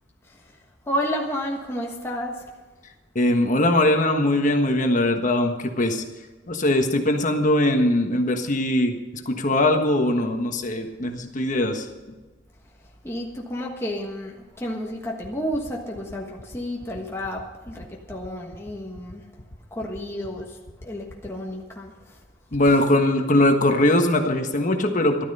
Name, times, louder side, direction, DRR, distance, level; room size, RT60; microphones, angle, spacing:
voice 1, 0.2-0.6 0.8-2.5 13.0-19.2 19.7-22.2, equal, 15° left, -1 dB, 1.4 m, -31 dB
voice 2, 3.1-6.0 6.5-11.8 22.5-25.2, left 1 dB, 40° left, 5 dB, 1.4 m, -21 dB
sound 1, 15.2-21.3, left 1 dB, 85° left, 1.7 m, -43 dB
13.5 x 13.0 x 5.5 m, 1.3 s
head